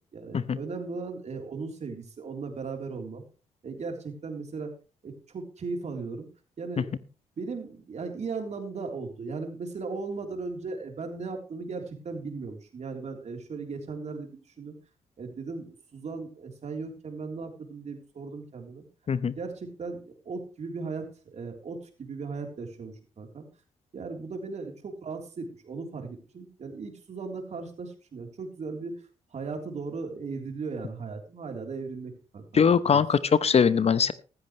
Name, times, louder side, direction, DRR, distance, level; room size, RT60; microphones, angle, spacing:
voice 1, 0.1-3.3 3.6-4.7 5.0-6.3 6.6-7.1 7.4-14.8 15.2-18.9 19.4-23.5 23.9-29.0 29.3-33.0, right 4 dB, 55° right, 3 dB, 3.6 m, -37 dB
voice 2, 32.5-34.1, left 6 dB, 50° left, 16 dB, 0.8 m, -21 dB
15.0 x 13.5 x 3.2 m, 0.35 s
supercardioid pair, 50°, 14 cm